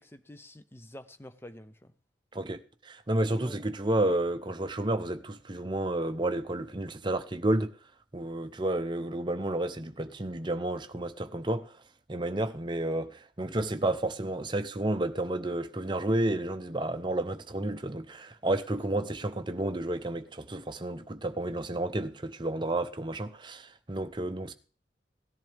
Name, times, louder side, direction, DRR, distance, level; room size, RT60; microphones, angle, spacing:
voice 1, 0.0-1.9 3.3-3.6, left 1 dB, 15° left, 0.6 m, -48 dB
voice 2, 2.3-7.8 8.1-11.8 12.1-24.5, right 1 dB, 25° right, 0.7 m, -31 dB
17.0 x 11.0 x 3.5 m
head